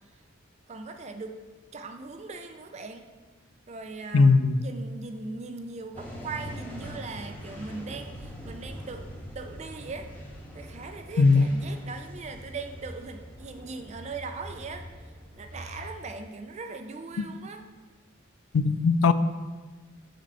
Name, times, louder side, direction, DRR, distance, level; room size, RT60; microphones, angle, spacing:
voice 1, 0.7-1.3 1.7-3.0 3.7-4.3 4.6-8.1 8.5-9.0 9.4-10.1 10.5-14.8 15.4-17.6, right 3 dB, 35° right, 6 dB, 0.4 m, -39 dB
voice 2, 4.1-4.6 11.2-11.5 18.5-19.1, left 4 dB, 80° left, 13 dB, 0.3 m, -19 dB
sound 1, 5.9-15.9, equal, 10° left, 0.9 m, -43 dB
5.0 x 4.4 x 5.5 m, 1.3 s
head